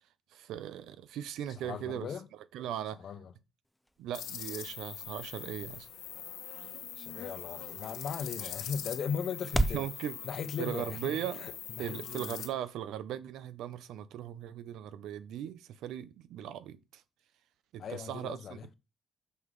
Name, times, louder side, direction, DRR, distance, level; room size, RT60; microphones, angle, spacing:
voice 1, 0.3-2.1 2.5-3.0 4.0-5.9 9.5-10.2 10.6-11.4 11.8-17.0 17.7-18.7, right 11 dB, 85° right, 0.7 m, -38 dB
voice 2, 1.5-2.3 3.0-3.3 7.0-9.8 10.2-12.4 17.8-18.7, left 7 dB, 45° left, 0.7 m, -38 dB
sound 1, 3.6-9.9, right 1 dB, ahead, 0.4 m, -39 dB
sound 2, 4.1-12.5, left 10 dB, 80° left, 1.1 m, -43 dB
6.5 x 5.6 x 4.8 m
cardioid pair, 170°, 0 cm